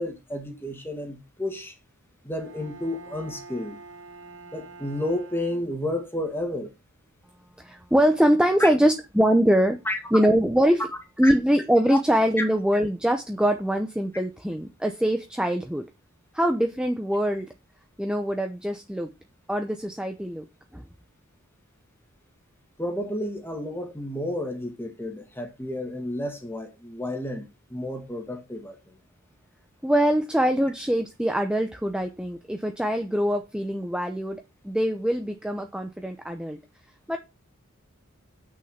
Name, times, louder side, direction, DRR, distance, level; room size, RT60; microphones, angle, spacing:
voice 1, 0.0-1.8 2.2-3.8 4.5-6.7 8.6-8.7 9.9-10.0 11.2-11.3 11.9-12.0 12.4-12.5 22.8-27.5 27.7-28.8, left 1 dB, 10° left, 2.0 m, -31 dB
Bowed string instrument, 2.4-6.1, right 3 dB, 70° right, 2.6 m, -46 dB
voice 2, 7.6-9.8 10.1-10.8 11.2-15.8 16.3-17.5 18.0-19.1 19.5-20.4 20.7-20.8 29.8-36.6 37.1-37.2, equal, 5° right, 0.8 m, -23 dB
8.4 x 6.4 x 5.8 m
head